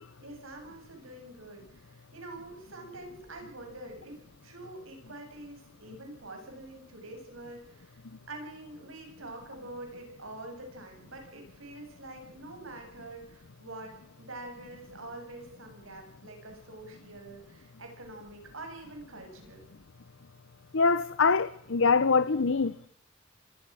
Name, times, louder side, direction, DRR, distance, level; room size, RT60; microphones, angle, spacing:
voice 1, 0.2-8.0 8.3-19.7, right 2 dB, 85° right, 7.9 m, -45 dB
voice 2, 20.7-22.9, left 4 dB, 65° left, 0.8 m, -24 dB
26.0 x 19.5 x 6.4 m
head